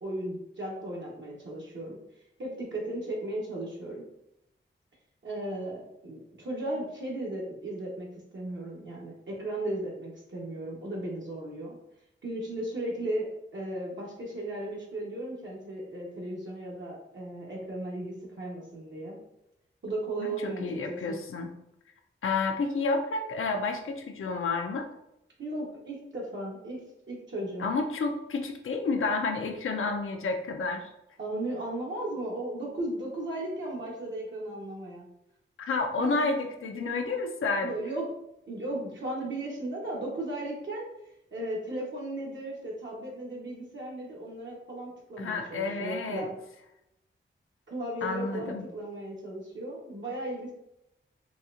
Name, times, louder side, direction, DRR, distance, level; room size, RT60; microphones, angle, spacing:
voice 1, 0.0-2.0 2.4-4.0 5.2-11.8 12.2-13.3 13.5-19.2 19.8-21.2 25.4-26.8 27.1-27.6 31.2-35.1 36.0-36.4 37.6-38.0 38.5-40.9 41.3-46.3 47.7-50.5, right 1 dB, 65° right, -4 dB, 1.0 m, -36 dB
voice 2, 20.2-21.5 22.2-24.9 27.6-30.9 35.7-37.7 45.2-46.3 48.0-48.7, left 3 dB, 80° left, 3 dB, 0.5 m, -30 dB
4.1 x 2.4 x 2.4 m, 0.84 s
wide cardioid pair, 80°, 21 cm